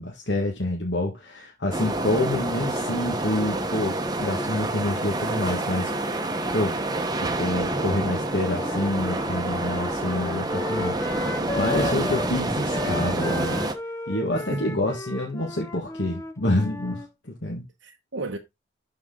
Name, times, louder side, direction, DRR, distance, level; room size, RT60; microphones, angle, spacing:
voice 1, 0.0-5.9 6.5-6.8 7.1-13.6 14.1-17.6, left 1 dB, 55° left, 1.6 m, -27 dB
sound 1, 1.7-13.7, right 2 dB, 20° right, 0.9 m, -28 dB
Wind instrument woodwind instrument, 8.4-12.3 12.7-17.1, left 2 dB, 15° left, 0.7 m, -34 dB
voice 2, 11.8-12.3 14.4-15.0 17.8-18.4, right 2 dB, 65° right, 0.9 m, -35 dB
12.5 x 4.2 x 3.8 m
head